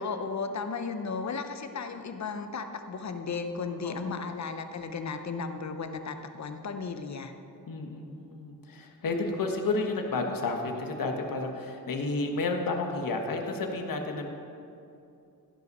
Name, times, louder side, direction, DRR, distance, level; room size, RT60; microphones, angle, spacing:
voice 1, 0.0-7.3, left 5 dB, 50° left, 8 dB, 0.7 m, -35 dB
voice 2, 3.8-4.5 7.7-14.3, left 3 dB, 65° left, 3 dB, 1.3 m, -31 dB
15.5 x 5.6 x 5.4 m, 2.6 s
wide cardioid pair, 135°, 37 cm